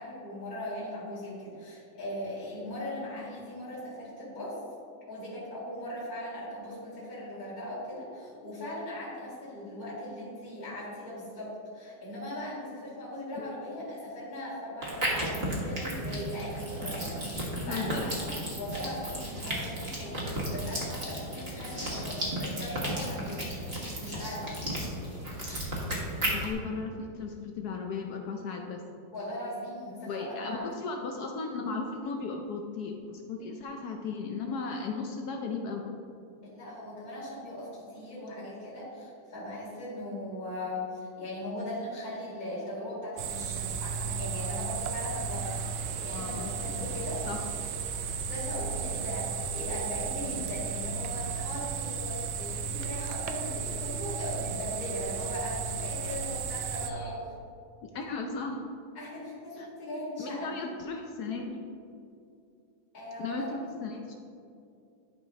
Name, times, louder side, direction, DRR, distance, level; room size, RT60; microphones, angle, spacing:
voice 1, 0.0-4.6 5.1-24.6 29.1-30.7 36.4-47.3 48.2-57.3 58.9-60.5 62.9-63.5, left 1 dB, 45° left, -9 dB, 2.4 m, -39 dB
sound 1, 14.8-26.5, right 1 dB, 30° right, 1.6 m, -34 dB
voice 2, 17.7-18.1 26.2-28.8 30.1-35.9 46.1-46.5 46.8-46.9 47.3-47.4 56.9-57.1 57.9-58.7 59.6-59.7 60.2-61.7 63.2-64.1, left 4 dB, 70° left, 2 dB, 0.9 m, -36 dB
sound 2, 43.2-56.9, right 6 dB, 75° right, 1.3 m, -34 dB
11.5 x 5.0 x 3.6 m, 2.5 s
omnidirectional pair, 2.2 m